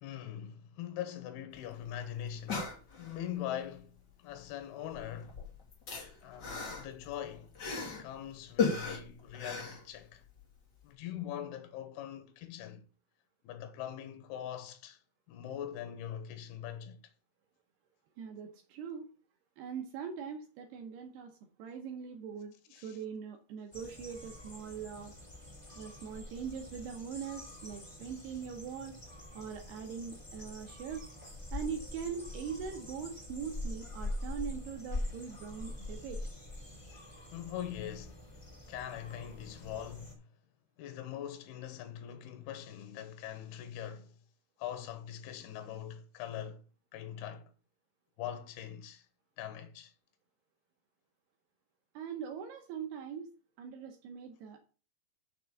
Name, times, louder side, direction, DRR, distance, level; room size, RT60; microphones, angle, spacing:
voice 1, 0.0-2.7 3.0-5.6 6.2-7.6 8.0-10.2 10.8-12.8 13.4-15.0 15.3-17.0 22.7-23.0 37.3-38.2 38.7-40.3 40.8-44.2 44.6-46.6 46.9-47.5 48.2-49.1 49.4-49.9, left 10 dB, 75° left, 3.0 m, -42 dB
sound 1, 1.6-1.7 1.8-1.9 2.3-3.3 4.4-4.6 4.9-8.1 8.6-10.4 10.8-10.9, left 5 dB, 35° left, 2.1 m, -36 dB
voice 2, 18.2-19.1 19.6-25.1 25.8-28.9 29.3-31.1 31.5-36.2 51.9-53.3 53.6-54.6, right 7 dB, 75° right, 2.8 m, -42 dB
sound 2, 23.7-40.1, left 1 dB, 10° left, 2.4 m, -44 dB
6.9 x 6.0 x 7.0 m
omnidirectional pair, 4.9 m